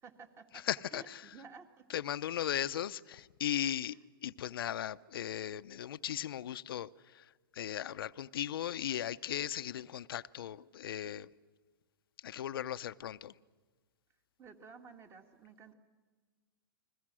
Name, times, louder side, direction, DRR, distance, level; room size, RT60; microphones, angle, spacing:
voice 1, 0.0-0.6 0.9-1.8 3.9-4.0 14.4-15.7, right 5 dB, 20° right, 2.0 m, -53 dB
voice 2, 0.5-1.3 1.9-11.3 12.2-13.3, left 10 dB, 75° left, 0.7 m, -37 dB
29.5 x 21.5 x 6.2 m
hypercardioid pair, 125°, 12 cm